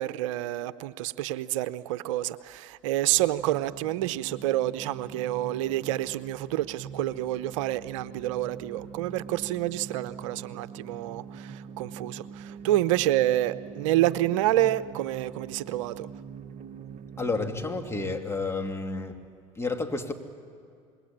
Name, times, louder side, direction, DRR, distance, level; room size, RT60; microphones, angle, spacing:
voice 1, 0.0-16.1, right 14 dB, 75° right, 14 dB, 0.7 m, -28 dB
sound 1, 3.1-18.2, right 6 dB, 45° right, 1.2 m, -43 dB
voice 2, 17.2-19.2 19.6-20.1, left 3 dB, 15° left, 4 dB, 2.7 m, -30 dB
26.5 x 21.5 x 8.8 m, 2.3 s
hypercardioid pair, 80°, 16 cm